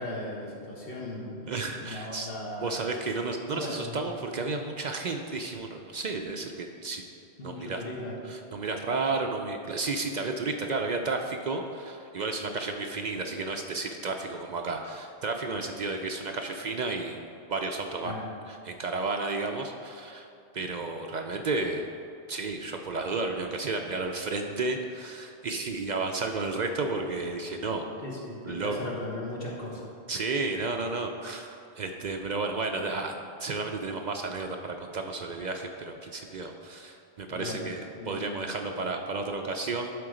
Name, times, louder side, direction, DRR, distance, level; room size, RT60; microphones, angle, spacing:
voice 1, 0.0-1.5 1.8-2.8 3.5-4.0 7.4-8.2 18.0-18.3 28.0-29.9 37.3-37.7 37.9-38.6, left 1 dB, 60° left, -3 dB, 1.5 m, -37 dB
voice 2, 1.5-2.3 2.6-7.0 7.4-7.8 8.3-17.2 17.5-18.1 18.5-20.3 20.5-21.9 22.3-27.9 28.5-28.9 30.1-33.1 33.4-39.9, right 3 dB, 55° right, 4 dB, 0.5 m, -32 dB
11.5 x 3.9 x 5.0 m, 2.6 s
omnidirectional pair, 1.1 m